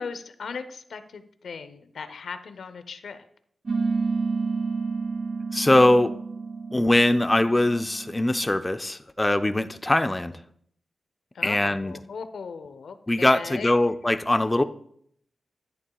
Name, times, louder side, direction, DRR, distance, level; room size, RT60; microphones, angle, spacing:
voice 1, 0.0-3.3 11.3-13.7, left 5 dB, 80° left, 11 dB, 0.7 m, -37 dB
sound 1, 3.7-8.6, right 4 dB, 45° right, 0.4 m, -30 dB
voice 2, 5.5-6.1 6.7-10.4 11.4-11.9 13.1-14.6, left 1 dB, 15° left, 10 dB, 0.5 m, -21 dB
11.0 x 10.5 x 2.3 m, 0.66 s
cardioid pair, 80°, 0 cm